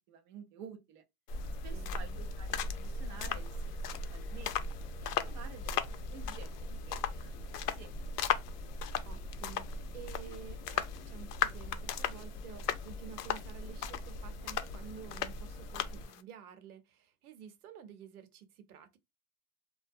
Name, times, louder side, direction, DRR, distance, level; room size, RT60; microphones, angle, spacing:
voice 1, 0.1-1.0 1.6-5.8 6.1-7.4 7.7-8.0, right 7 dB, 35° right, 0.5 m, -51 dB
sound 1, 1.3-16.2, left 10 dB, 85° left, 0.6 m, -39 dB
sound 2, 1.3-16.0, equal, 25° left, 0.5 m, -42 dB
voice 2, 1.7-2.2 9.0-19.0, right 8 dB, 70° right, 0.8 m, -51 dB
2.5 x 2.2 x 2.5 m
hypercardioid pair, 135°, 46 cm